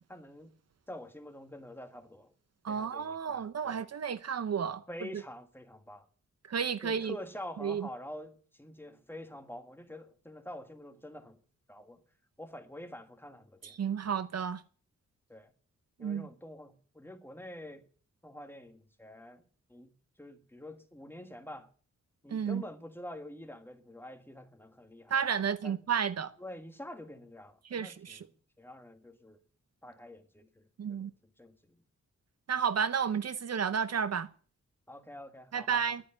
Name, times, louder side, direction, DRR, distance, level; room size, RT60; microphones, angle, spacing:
voice 1, 0.1-0.5 0.9-2.3 2.7-3.8 4.9-6.1 6.8-11.4 11.7-12.0 12.4-13.8 15.3-15.5 16.0-17.8 18.2-19.4 19.7-21.7 22.2-25.2 25.6-25.8 26.4-28.2 28.6-29.4 29.8-30.6 30.9-31.1 31.4-31.8 34.9-36.0, left 1 dB, 5° left, 1.6 m, -47 dB
voice 2, 2.6-5.2 6.5-7.2 7.6-7.9 13.6-14.6 16.0-16.3 22.3-22.6 25.1-26.3 27.7-28.3 30.8-31.1 32.5-34.3 35.5-36.0, right 7 dB, 60° right, 0.9 m, -32 dB
11.5 x 9.7 x 10.0 m
wide cardioid pair, 165°, 29 cm